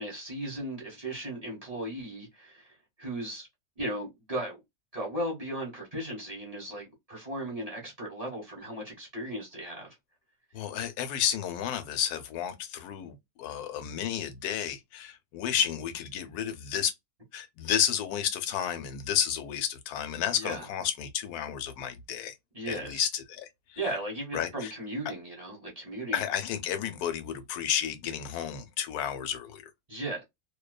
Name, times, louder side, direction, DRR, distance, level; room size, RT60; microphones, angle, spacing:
voice 1, 0.0-3.5 3.8-4.6 4.9-9.9 20.3-20.6 22.5-23.0 23.8-26.2 29.9-30.2, right 1 dB, 30° right, 1.1 m, -36 dB
voice 2, 10.5-16.9 17.3-22.3 22.7-23.8 24.3-24.7 26.1-29.6, left 9 dB, 90° left, 1.1 m, -31 dB
2.6 x 2.2 x 2.2 m
omnidirectional pair, 1.6 m